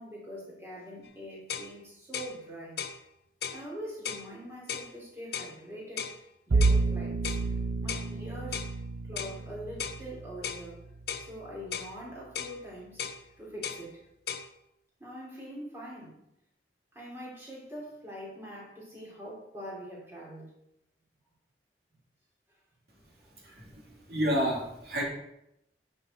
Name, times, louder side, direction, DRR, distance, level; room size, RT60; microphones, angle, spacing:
voice 1, 0.0-2.8 3.5-6.1 6.5-7.3 7.8-8.7 9.1-10.8 11.2-13.0 13.4-14.0 15.0-16.2 16.9-20.5, equal, 15° right, -5 dB, 2.9 m, -43 dB
sound 1, 1.1-1.2 1.5-1.7 2.1-2.3 2.8-3.0 3.4-3.6 4.0-4.3 4.7-4.9 5.3-5.5 6.0-6.2 6.6-6.8 7.2-7.5 7.9-8.1 8.5-8.7 9.2-9.4 9.8-10.0 10.4-10.6 11.1-11.3 11.7-11.9 12.3-12.6 13.0-13.2 13.6-13.8 14.3-14.5, left 7 dB, 65° left, 0.7 m, -36 dB
Bowed string instrument, 6.5-11.6, right 3 dB, 85° right, 0.6 m, -30 dB
voice 2, 23.4-25.0, equal, 65° right, -3 dB, 2.6 m, -30 dB
9.8 x 5.5 x 4.1 m, 0.83 s
head